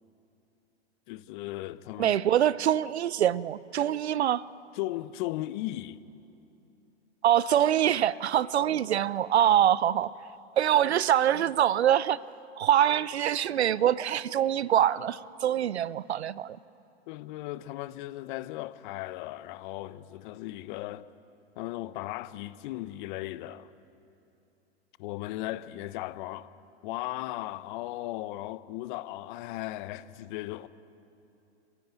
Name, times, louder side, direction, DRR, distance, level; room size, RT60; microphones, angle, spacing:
voice 1, 1.1-2.1 4.7-6.0 17.1-21.1 21.6-23.7 25.0-26.5 26.8-30.7, left 16 dB, 45° left, 1.0 m, -36 dB
voice 2, 2.0-4.5 7.2-10.1 10.6-12.2 12.6-16.6, right 10 dB, 75° right, 0.7 m, -24 dB
28.0 x 15.5 x 9.0 m
hypercardioid pair, 105°, 33 cm